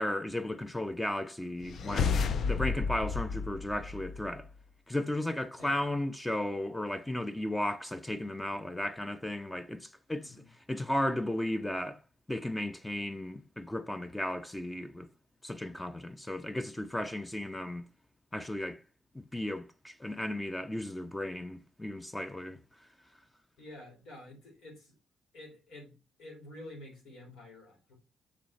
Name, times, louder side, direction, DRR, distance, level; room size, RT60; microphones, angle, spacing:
voice 1, 0.0-2.2 2.5-4.5 4.9-10.3 10.7-12.0 12.3-15.1 15.4-17.8 18.3-18.8 19.1-22.6, left 1 dB, 10° left, 0.5 m, -35 dB
sound 1, 1.6-4.4, left 5 dB, 60° left, 0.5 m, -32 dB
voice 2, 10.2-10.5 23.6-24.9 25.3-27.9, left 1 dB, 85° left, 3.5 m, -49 dB
6.2 x 4.2 x 4.1 m
cardioid pair, 90°, 0 cm